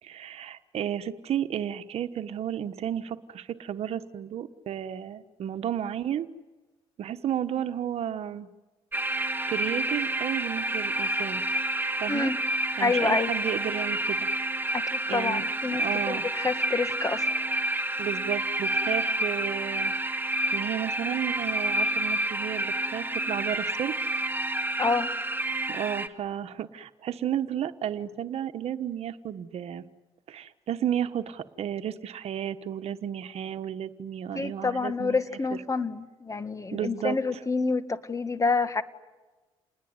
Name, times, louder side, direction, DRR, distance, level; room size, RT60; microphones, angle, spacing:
voice 1, 0.0-6.3 7.0-8.5 9.1-11.4 12.0-12.3 12.8-14.3 15.1-16.2 18.0-19.9 20.5-23.9 25.7-29.9 30.3-35.2 36.7-37.2, right 10 dB, 70° right, 11 dB, 1.2 m, -33 dB
sound 1, 8.9-26.1, right 1 dB, 20° right, 1.7 m, -29 dB
voice 2, 12.1-12.4 12.8-13.3 14.7-17.3 24.8-25.1 34.3-38.8, left 4 dB, 30° left, 11 dB, 1.7 m, -28 dB
28.5 x 20.5 x 9.7 m, 1.2 s
cardioid pair, 80°, 11 cm